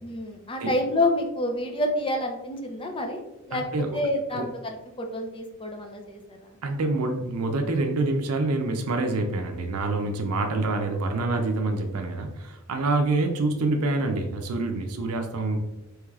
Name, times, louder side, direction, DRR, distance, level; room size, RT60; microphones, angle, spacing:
voice 1, 0.0-6.6, left 1 dB, 25° left, 3 dB, 0.5 m, -28 dB
voice 2, 3.5-4.0 4.3-4.5 6.6-15.6, right 2 dB, 90° right, 5 dB, 0.5 m, -26 dB
4.6 x 3.1 x 2.4 m, 0.93 s
head